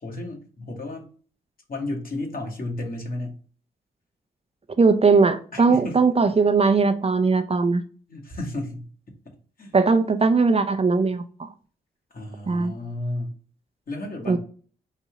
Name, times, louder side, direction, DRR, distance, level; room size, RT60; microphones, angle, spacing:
voice 1, 0.0-1.1 1.7-3.3 5.5-6.0 8.1-8.9 9.6-9.7 12.1-13.3 13.9-14.4, left 2 dB, 50° left, 1.7 m, -32 dB
voice 2, 4.8-7.8 9.7-11.5 12.5-12.7 14.3-14.4, right 4 dB, 30° right, 0.5 m, -19 dB
4.1 x 2.7 x 4.7 m
supercardioid pair, 50°, 19 cm